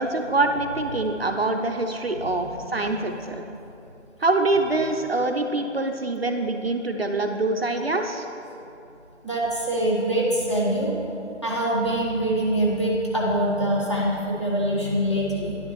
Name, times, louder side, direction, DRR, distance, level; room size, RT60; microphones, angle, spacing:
voice 1, 0.0-3.4 4.2-8.3, right 2 dB, 55° right, 5 dB, 0.5 m, -25 dB
voice 2, 2.4-3.1 4.8-4.9 9.2-10.9 11.4-15.7, right 1 dB, 25° left, -5 dB, 0.9 m, -24 dB
10.0 x 7.5 x 3.0 m, 2.8 s
figure-of-eight pair, 170°, 37 cm